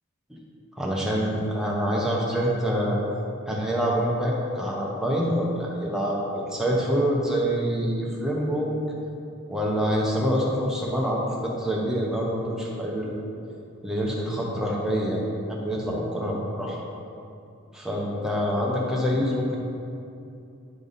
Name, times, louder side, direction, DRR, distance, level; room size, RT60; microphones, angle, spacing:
voice 1, 0.7-3.0 3.5-8.8 9.5-13.1 13.8-15.2 15.5-16.8 17.7-19.6, equal, ahead, -4 dB, 0.9 m, -26 dB
9.7 x 3.5 x 4.0 m, 2.7 s
head